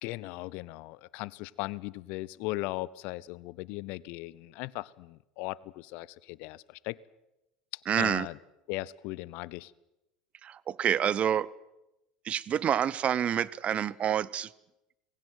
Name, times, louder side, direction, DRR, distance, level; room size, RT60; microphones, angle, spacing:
voice 1, 0.0-7.0 8.0-8.4 8.7-9.7, left 20 dB, 65° left, 21 dB, 0.8 m, -38 dB
voice 2, 7.9-8.3 10.4-11.5 12.2-14.5, right 9 dB, 40° right, 21 dB, 0.8 m, -28 dB
20.0 x 17.0 x 9.4 m, 0.92 s
hypercardioid pair, 85°, 3 cm